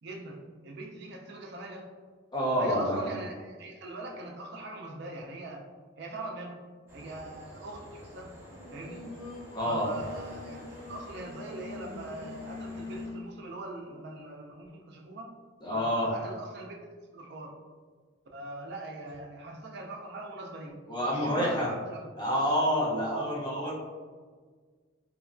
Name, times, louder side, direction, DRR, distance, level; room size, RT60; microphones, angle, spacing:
voice 1, 0.0-1.9 2.6-5.6 6.0-6.6 6.9-8.4 8.7-9.0 9.6-15.3 15.7-17.6 18.3-20.8 21.1-22.1 23.1-23.3, right 2 dB, 55° right, 1 dB, 0.4 m, -41 dB
voice 2, 2.3-3.0 9.5-9.9 15.6-16.1 20.9-21.7 22.2-23.7, equal, 20° left, -6 dB, 0.6 m, -28 dB
sound 1, 6.9-13.1, equal, 10° right, 0.8 m, -49 dB
Singing, 8.5-13.4, left 3 dB, 90° left, 0.4 m, -44 dB
3.0 x 2.2 x 2.4 m, 1.5 s
head